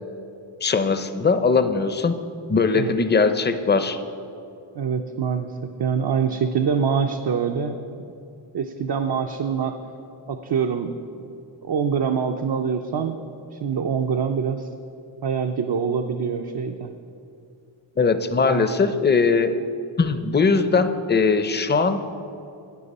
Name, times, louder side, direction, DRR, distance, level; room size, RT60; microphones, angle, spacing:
voice 1, 0.6-2.2 2.5-4.0 18.0-19.5 20.0-22.0, left 4 dB, 25° left, 10 dB, 0.5 m, -20 dB
voice 2, 4.7-7.8 8.5-9.8 10.3-11.2 11.6-13.2 13.5-14.7 15.2-16.9 18.4-18.8, right 6 dB, 55° right, 4 dB, 0.5 m, -25 dB
12.0 x 8.6 x 4.1 m, 2.7 s
wide cardioid pair, 70°, 48 cm